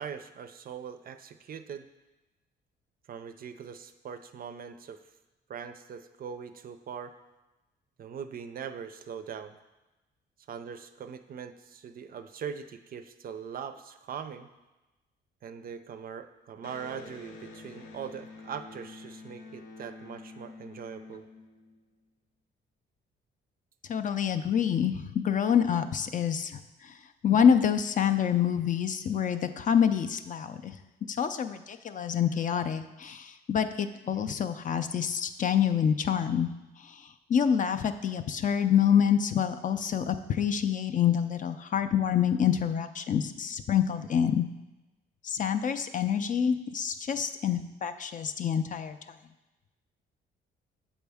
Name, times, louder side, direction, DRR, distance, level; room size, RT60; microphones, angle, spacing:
voice 1, 0.0-1.9 3.1-5.0 5.5-7.1 8.0-9.6 10.5-14.5 15.4-21.2, right 7 dB, 45° right, 10 dB, 0.4 m, -41 dB
Electric guitar, 16.6-22.1, left 3 dB, 85° left, 0.6 m, -48 dB
voice 2, 23.9-26.9 27.2-30.8 31.1-36.5 36.8-37.0 37.3-44.5 45.2-49.0, left 8 dB, 40° left, 9 dB, 0.4 m, -27 dB
7.1 x 4.2 x 3.5 m, 1.1 s
cardioid pair, 90°, 20 cm